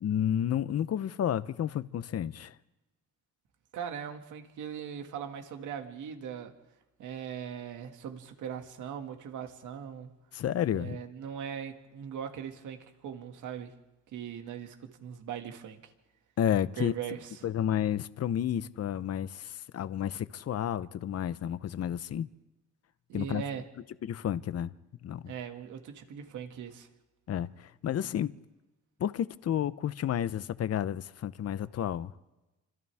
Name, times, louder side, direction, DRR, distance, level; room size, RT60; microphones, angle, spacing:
voice 1, 0.0-2.5 10.3-11.0 16.4-16.9 17.4-22.3 23.1-23.4 24.0-24.7 25.0-25.3 27.3-28.3 29.0-32.1, left 10 dB, 55° left, 0.8 m, -31 dB
voice 2, 3.7-6.5 7.0-10.1 10.7-13.7 14.1-15.9 16.8-17.5 23.1-23.6 25.3-26.9, right 8 dB, 80° right, 2.2 m, -40 dB
29.0 x 25.5 x 3.6 m
cardioid pair, 90°, 30 cm